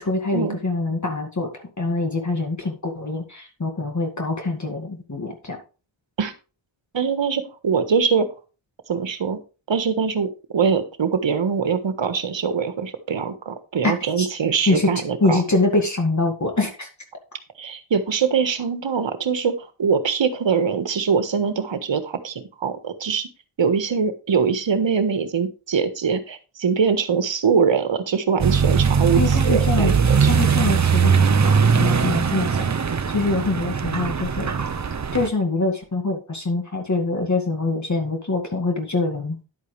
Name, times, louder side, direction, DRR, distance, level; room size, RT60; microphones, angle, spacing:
voice 1, 0.0-5.6 14.2-14.3 14.7-14.9 15.2-16.9 29.2-29.9 30.3-32.7 33.1-34.5 35.1-39.5, left 3 dB, 35° left, 3 dB, 2.1 m, -24 dB
voice 2, 6.9-8.3 8.9-9.4 9.7-15.4 17.6-23.3 23.6-30.3, right 6 dB, 65° right, 9 dB, 1.5 m, -23 dB
Accelerating revving vroom, 28.4-35.3, right 6 dB, 35° right, 0.7 m, -20 dB
11.0 x 8.4 x 3.3 m, 0.33 s
wide cardioid pair, 95°, 48 cm